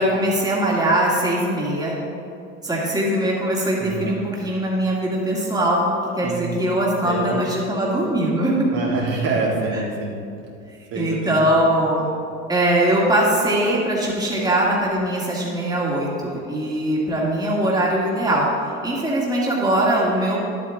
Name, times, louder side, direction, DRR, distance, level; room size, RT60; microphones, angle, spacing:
voice 1, 0.0-2.0 2.6-8.5 9.7-9.8 11.0-12.0 12.5-18.5 18.8-20.4, right 1 dB, 10° right, -4 dB, 2.2 m, -21 dB
voice 2, 3.8-4.2 6.2-6.6 7.0-7.5 8.7-10.2 10.9-11.6, right 3 dB, 55° right, -3 dB, 2.2 m, -26 dB
10.5 x 8.3 x 3.6 m, 2.5 s
hypercardioid pair, 85°, 40 cm